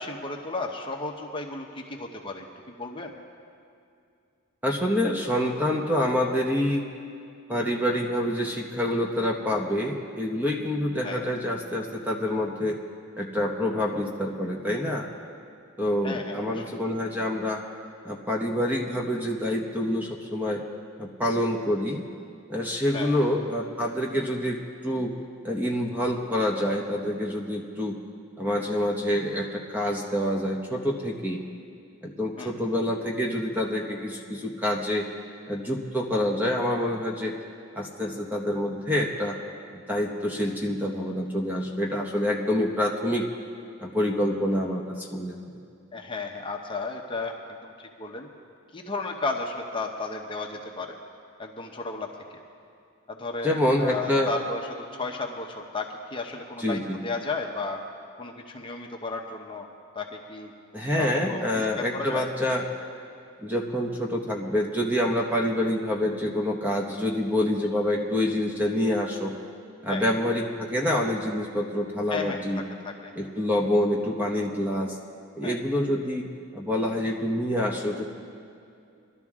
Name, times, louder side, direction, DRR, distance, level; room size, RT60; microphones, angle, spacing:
voice 1, 0.0-3.2 11.0-11.3 16.0-16.7 22.9-23.2 32.4-32.5 45.9-47.3 47.6-48.3 48.7-50.9 51.4-52.1 53.1-57.8 58.2-59.7 59.9-60.5 60.9-62.3 69.9-70.1 72.1-72.4 72.8-73.1 75.4-75.6, left 3 dB, 25° left, 2 dB, 0.8 m, -34 dB
voice 2, 4.6-6.8 7.5-12.8 13.2-15.1 15.8-17.6 18.0-20.6 21.0-22.1 22.5-24.6 24.8-25.1 25.4-28.0 28.4-31.4 32.0-35.0 35.5-37.3 37.8-39.4 39.7-43.3 43.8-45.5 53.4-54.3 56.6-57.0 60.7-62.7 63.4-69.3 69.8-72.6 73.2-75.0 75.3-78.0, left 1 dB, 10° right, 0 dB, 0.8 m, -27 dB
21.5 x 12.0 x 3.6 m, 2.4 s
head